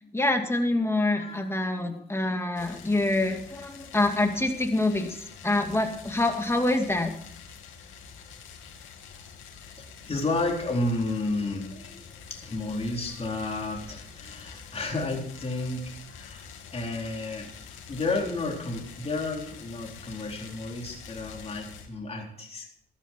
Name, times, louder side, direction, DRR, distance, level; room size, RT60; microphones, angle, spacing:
voice 1, 0.1-5.2 5.4-7.1, left 2 dB, 15° left, 4 dB, 2.4 m, -26 dB
voice 2, 0.8-1.5 1.8-2.2 9.8-12.0 12.3-17.5 17.9-22.7, left 2 dB, 30° left, -1 dB, 4.0 m, -32 dB
sound 1, 2.6-21.9, left 6 dB, 80° left, 2.7 m, -46 dB
13.5 x 13.0 x 4.6 m, 0.66 s
cardioid pair, 90°, 20 cm